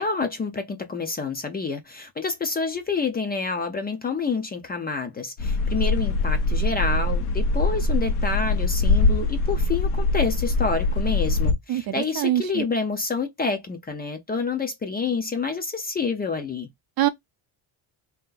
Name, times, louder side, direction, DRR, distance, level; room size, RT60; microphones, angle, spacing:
voice 1, 0.0-16.7, left 4 dB, 20° left, 0.5 m, -28 dB
sound 1, 5.4-11.5, left 2 dB, 75° left, 1.1 m, -23 dB
voice 2, 11.7-12.6 17.0-17.1, right 13 dB, 50° right, 0.6 m, -24 dB
3.2 x 2.9 x 3.7 m
cardioid pair, 160°, 49 cm